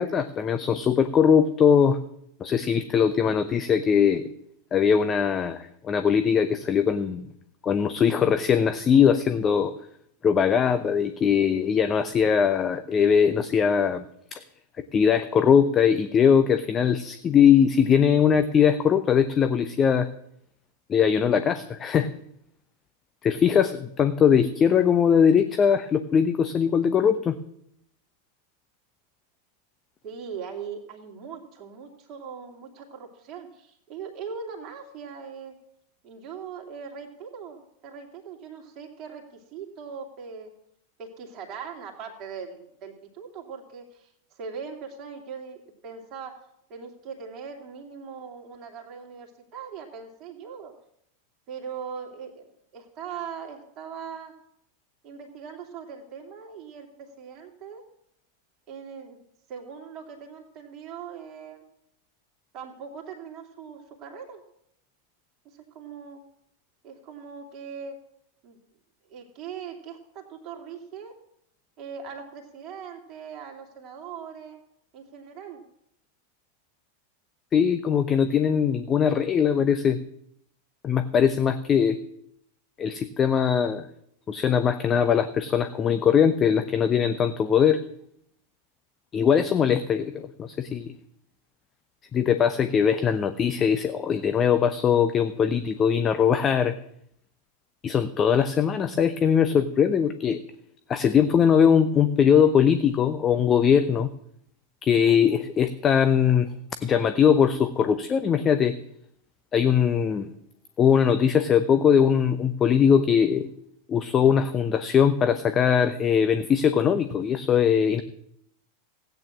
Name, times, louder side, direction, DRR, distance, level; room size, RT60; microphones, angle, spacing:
voice 1, 0.0-2.0 2.4-4.3 4.7-7.2 7.6-9.7 10.2-14.0 14.3-14.4 14.9-20.1 20.9-22.1 23.2-27.4 77.5-80.0 80.8-82.0 82.8-83.9 84.3-87.8 89.1-90.9 92.1-96.7 97.8-100.4 100.9-104.1 104.8-106.5 106.8-108.7 109.5-110.3 110.8-113.5 113.9-118.0, left 7 dB, 25° left, 10 dB, 0.8 m, -21 dB
voice 2, 30.0-35.5 36.0-40.5 41.0-46.4 46.7-50.7 51.5-52.5 52.7-54.3 55.0-57.8 58.7-59.2 59.5-61.6 62.5-64.4 65.4-66.2 66.8-68.0 68.4-68.6 69.1-71.2 71.8-74.6 74.9-75.6, right 6 dB, 35° right, 1 dB, 2.7 m, -40 dB
16.5 x 9.2 x 7.3 m, 0.74 s
figure-of-eight pair, 90°, 0 cm